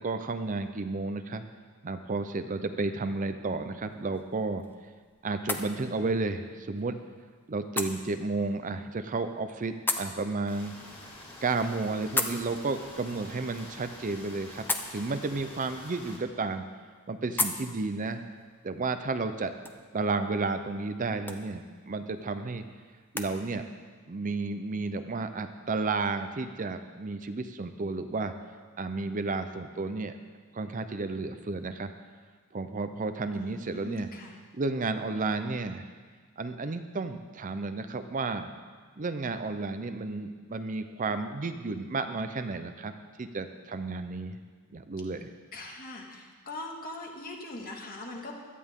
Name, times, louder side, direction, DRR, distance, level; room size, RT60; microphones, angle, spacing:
voice 1, 0.0-1.4 1.8-4.6 5.2-7.0 7.5-10.7 11.4-14.6 14.9-16.6 17.1-18.2 18.6-19.5 19.9-22.6 23.1-23.6 24.1-28.3 28.8-30.2 30.5-31.9 32.5-34.1 34.5-35.9 36.4-38.5 39.0-42.9 43.2-44.4 44.7-45.3, right 3 dB, 35° right, 9 dB, 0.5 m, -32 dB
sound 1, 3.8-23.3, left 2 dB, 10° left, 0.7 m, -40 dB
sound 2, 10.5-16.2, left 1 dB, 25° left, 3.1 m, -47 dB
voice 2, 33.3-34.4 45.5-48.3, left 2 dB, 40° left, 0 dB, 1.9 m, -41 dB
17.0 x 12.5 x 3.7 m, 1.5 s
head